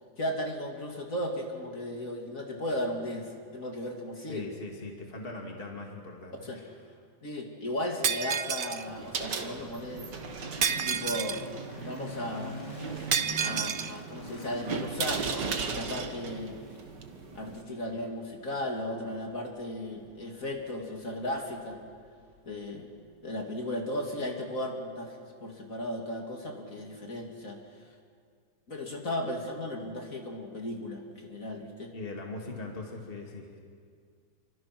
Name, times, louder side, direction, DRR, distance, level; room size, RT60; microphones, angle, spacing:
voice 1, 0.2-4.5 6.4-6.6 7.2-10.1 10.8-11.4 11.8-12.6 13.4-16.6 17.3-21.8 22.5-22.9 23.2-27.8 28.7-31.9, left 1 dB, 50° left, 1 dB, 3.0 m, -36 dB
voice 2, 4.3-6.8 31.9-33.5, left 2 dB, 30° left, 1 dB, 2.7 m, -40 dB
Shatter, 8.0-8.9 10.6-11.5 13.1-13.9, right 7 dB, 65° right, 0.5 m, -29 dB
sound 1, 8.6-22.7, equal, 70° left, 5.1 m, -46 dB
sound 2, 8.9-17.6, right 5 dB, 85° right, 2.1 m, -38 dB
29.0 x 25.0 x 6.1 m, 2.1 s
omnidirectional pair, 1.8 m